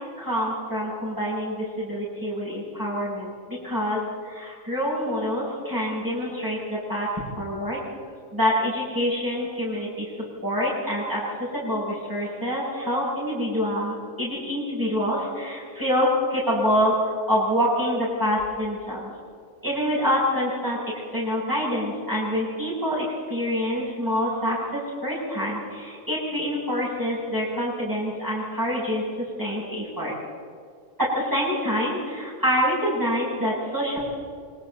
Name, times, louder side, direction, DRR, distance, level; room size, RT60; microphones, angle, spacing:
voice 1, 0.2-7.1 7.4-7.8 8.3-10.1 10.4-19.1 19.6-20.8 21.1-29.0 29.4-30.1 31.0-34.0, equal, 15° right, -8 dB, 8.1 m, -26 dB
29.0 x 25.0 x 4.2 m, 2.1 s
omnidirectional pair, 1.3 m